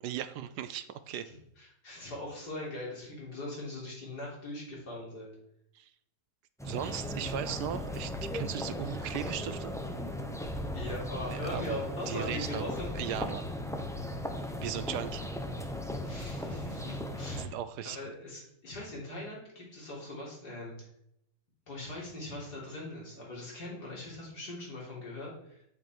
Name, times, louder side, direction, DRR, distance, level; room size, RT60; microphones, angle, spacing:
voice 1, 0.0-1.3 5.7-5.9 6.6-9.7 11.3-12.6 12.9-13.5 14.6-15.3 17.4-18.0, right 10 dB, 75° right, 12 dB, 1.1 m, -37 dB
voice 2, 1.2-5.3 10.7-13.2 16.0-17.5 17.8-20.8 21.7-25.6, left 1 dB, 65° left, -4 dB, 4.2 m, -41 dB
sound 1, 6.6-17.4, left 1 dB, 5° left, 0.5 m, -37 dB
8.5 x 8.0 x 4.6 m, 0.77 s
omnidirectional pair, 1.9 m